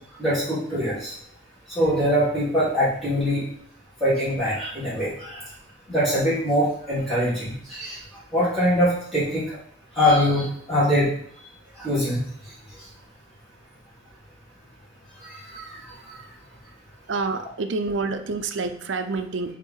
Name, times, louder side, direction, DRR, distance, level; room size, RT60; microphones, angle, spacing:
voice 1, 0.2-1.1 1.7-3.4 4.0-5.4 5.9-8.0 8.3-9.4 9.9-11.1 11.8-12.2 15.2-15.8 16.0-16.1, equal, ahead, -13 dB, 3.0 m, -23 dB
voice 2, 17.1-19.5, right 3 dB, 70° right, 7 dB, 0.6 m, -28 dB
6.5 x 3.7 x 5.6 m, 0.62 s
head